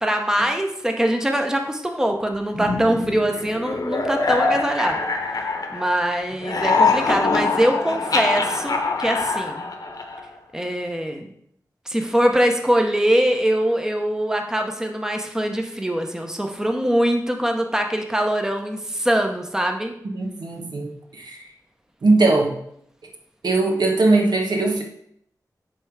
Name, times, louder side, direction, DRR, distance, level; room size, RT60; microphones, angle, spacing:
voice 1, 0.0-5.0 5.7-9.6 10.5-11.3 11.9-19.9, equal, 10° right, 4 dB, 0.8 m, -22 dB
sound 1, 2.5-6.0 6.3-10.4, left 3 dB, 65° left, 1.0 m, -24 dB
voice 2, 20.1-21.4 22.0-22.5 23.4-24.8, right 2 dB, 80° right, 1 dB, 1.2 m, -20 dB
10.0 x 3.4 x 4.7 m, 0.71 s
wide cardioid pair, 95°, 7 cm